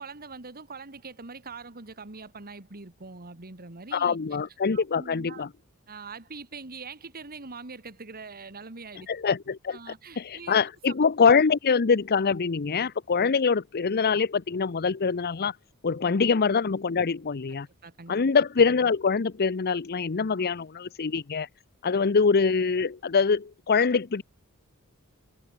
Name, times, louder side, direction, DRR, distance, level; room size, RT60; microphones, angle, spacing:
voice 1, 0.0-4.2 4.7-5.5 5.9-9.1 9.7-10.9 16.0-16.1 17.8-18.2, right 4 dB, 45° right, 2.2 m, -43 dB
voice 2, 3.9-5.5 9.1-9.8 10.2-15.5 15.8-17.7 18.1-21.5 21.8-24.2, left 5 dB, 45° left, 0.6 m, -24 dB
head